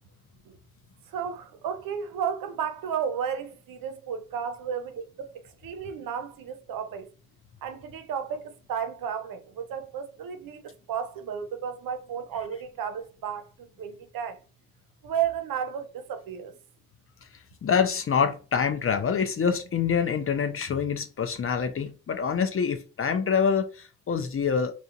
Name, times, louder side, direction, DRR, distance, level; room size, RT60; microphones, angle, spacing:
voice 1, 1.1-7.1 7.6-14.4 15.0-16.5, right 7 dB, 60° right, 0.6 m, -33 dB
voice 2, 17.6-24.8, left 6 dB, 35° left, 0.5 m, -26 dB
2.6 x 2.1 x 2.4 m
hypercardioid pair, 45°, 39 cm